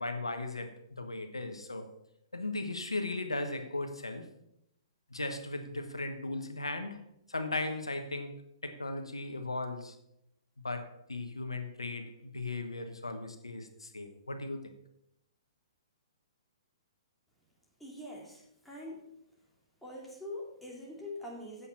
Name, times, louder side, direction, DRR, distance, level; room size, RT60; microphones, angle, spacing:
voice 1, 0.0-1.9 2.3-4.3 5.1-7.0 7.3-8.3 8.6-10.0 10.6-14.6, left 2 dB, 90° left, 7 dB, 1.1 m, -37 dB
voice 2, 17.8-19.0 19.8-21.7, left 1 dB, ahead, -4 dB, 2.8 m, -44 dB
8.4 x 7.8 x 5.7 m, 0.80 s
figure-of-eight pair, 125°, 3 cm